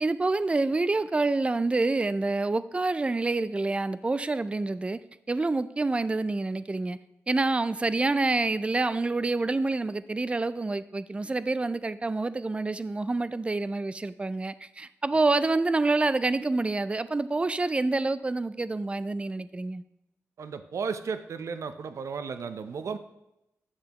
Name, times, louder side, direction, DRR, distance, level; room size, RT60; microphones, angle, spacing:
voice 1, 0.0-5.0 5.3-7.0 7.3-19.8, right 3 dB, 20° right, 15 dB, 0.4 m, -27 dB
voice 2, 20.4-23.0, right 5 dB, 65° right, 10 dB, 0.6 m, -34 dB
10.5 x 6.7 x 2.9 m, 0.89 s
cardioid pair, 80°, 6 cm